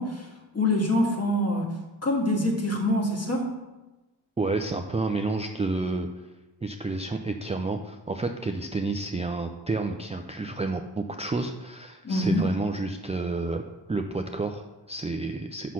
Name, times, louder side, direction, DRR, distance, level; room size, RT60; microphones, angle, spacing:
voice 1, 0.0-1.7 2.0-3.6 12.0-12.5, left 1 dB, 35° left, -1 dB, 1.8 m, -25 dB
voice 2, 4.4-6.1 6.6-13.6 13.9-15.7, right 3 dB, 15° right, 5 dB, 0.4 m, -30 dB
6.0 x 5.7 x 6.2 m, 1.1 s
wide cardioid pair, 95°, 46 cm